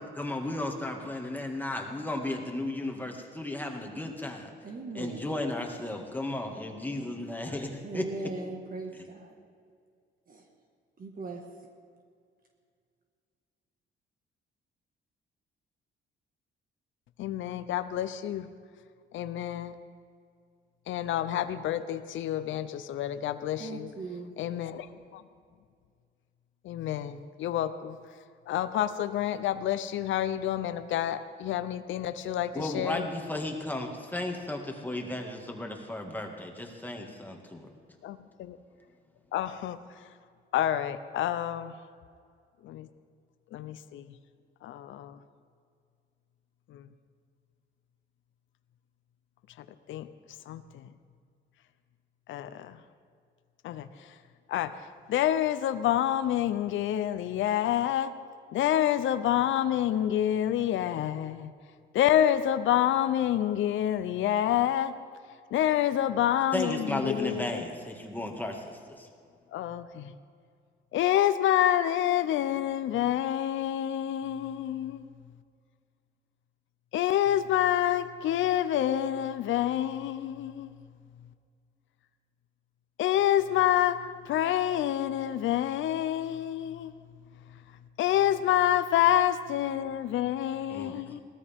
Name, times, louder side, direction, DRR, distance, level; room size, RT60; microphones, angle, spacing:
voice 1, 0.0-4.5 5.0-8.1 32.5-37.7 66.5-69.1 90.7-91.2, left 1 dB, 10° left, 2 dB, 1.9 m, -34 dB
voice 2, 4.6-5.3 6.9-7.1 7.7-9.3 10.3-10.4 11.0-11.4 23.5-24.3, right 3 dB, 45° right, 2 dB, 1.7 m, -39 dB
voice 3, 17.2-18.5 19.1-19.7 20.9-23.9 24.4-25.2 26.6-28.0 28.5-33.1 38.0-38.6 39.3-39.8 40.5-41.7 42.6-42.9 43.5-44.1 44.6-45.2 46.7-46.8 49.9-50.1 50.5-50.9 52.3-52.8 53.6-53.9 54.5-54.8 55.1-58.1 58.5-61.5 61.9-64.9 65.5-67.6 69.5-70.1 70.9-75.1 76.9-80.7 83.0-86.9 88.0-91.2, left 11 dB, 75° left, 12 dB, 0.6 m, -28 dB
18.5 x 13.5 x 3.6 m, 2.2 s
cardioid pair, 90°, 20 cm